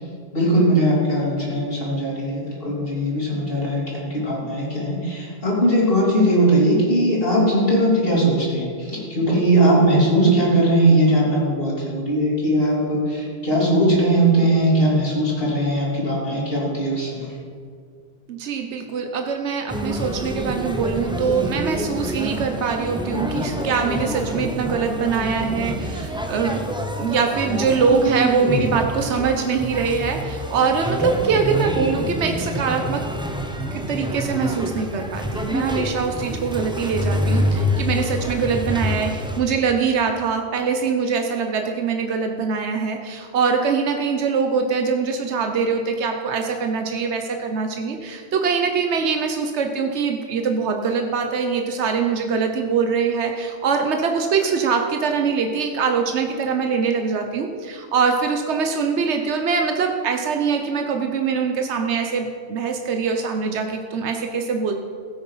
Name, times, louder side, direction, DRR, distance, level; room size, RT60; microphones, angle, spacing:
voice 1, 0.3-17.3, right 1 dB, 55° left, -4 dB, 3.4 m, -19 dB
voice 2, 18.3-26.6 27.0-33.0 33.7-64.8, right 5 dB, 85° right, 4 dB, 1.2 m, -23 dB
sound 1, 19.7-39.4, equal, 5° right, 1.0 m, -27 dB
15.0 x 8.5 x 5.6 m, 2.1 s
omnidirectional pair, 1.1 m